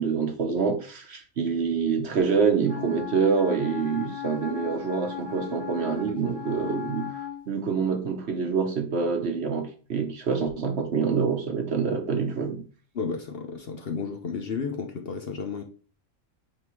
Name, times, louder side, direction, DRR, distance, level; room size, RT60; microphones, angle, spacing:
voice 1, 0.0-7.1 7.5-12.7, right 5 dB, 55° right, 1.1 m, -26 dB
Wind instrument woodwind instrument, 2.6-7.4, left 9 dB, 25° left, 0.6 m, -36 dB
voice 2, 12.9-15.6, left 5 dB, 50° left, 0.9 m, -32 dB
8.8 x 3.5 x 3.1 m
omnidirectional pair, 1.4 m